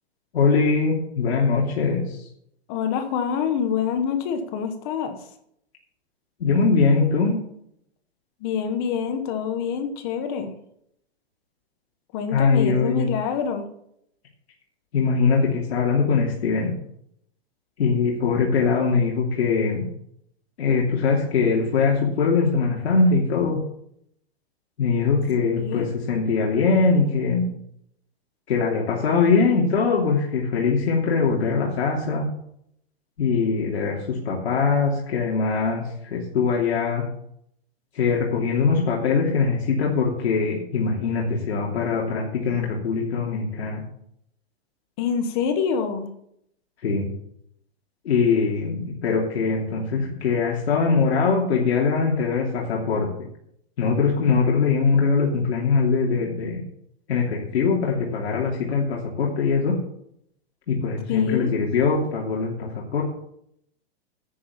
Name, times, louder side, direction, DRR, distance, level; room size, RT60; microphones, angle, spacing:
voice 1, 0.3-2.2 6.4-7.4 12.3-13.0 14.9-16.7 17.8-19.9 20.6-23.6 24.8-27.5 28.5-32.3 33.2-37.0 37.9-43.8 46.8-47.1 48.0-53.1 53.8-56.6 57.1-59.8 60.7-63.0, left 4 dB, 80° left, -2 dB, 3.0 m, -22 dB
voice 2, 2.7-5.2 8.4-10.5 12.1-13.7 25.6-25.9 45.0-46.1 61.1-61.5, left 7 dB, 25° left, 7 dB, 1.2 m, -26 dB
10.5 x 8.6 x 7.0 m, 0.72 s
supercardioid pair, 180°, 32 cm